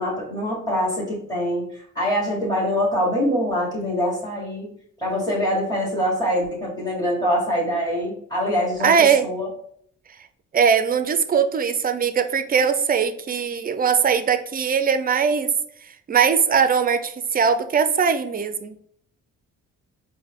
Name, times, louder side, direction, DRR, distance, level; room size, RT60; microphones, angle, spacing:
voice 1, 0.0-4.7 5.0-8.9 9.2-9.5, equal, 10° left, -8 dB, 1.5 m, -24 dB
voice 2, 8.8-9.3 10.5-15.5 16.1-18.8, right 6 dB, 25° right, 10 dB, 0.4 m, -20 dB
4.4 x 2.2 x 3.5 m, 0.66 s
cardioid pair, 75°, 34 cm